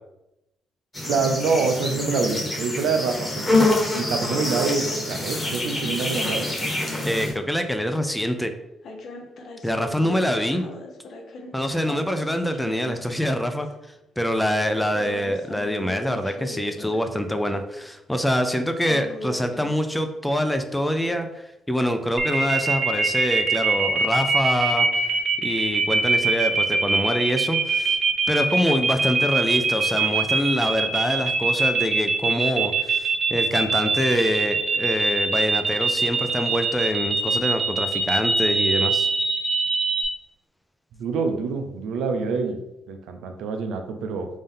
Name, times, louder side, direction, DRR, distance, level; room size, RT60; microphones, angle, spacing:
sound 1, 0.9-7.3, left 2 dB, 25° left, 1.3 m, -26 dB
voice 1, 1.1-3.7 3.9-6.5 41.0-42.6 42.9-44.3, right 4 dB, 85° right, 6 dB, 0.5 m, -26 dB
sound 2, 4.8-7.4 8.8-13.4 13.8-13.9 14.7-17.5 18.8-19.7, left 2 dB, 60° left, 0.6 m, -40 dB
voice 2, 7.0-8.5 9.6-10.7 11.5-13.7 14.2-25.0 25.4-28.0 28.3-39.1, equal, 5° left, 7 dB, 0.4 m, -25 dB
sound 3, 22.2-40.0, right 4 dB, 45° right, 0.7 m, -22 dB
3.5 x 2.7 x 3.6 m, 0.90 s
cardioid pair, 90°, 0 cm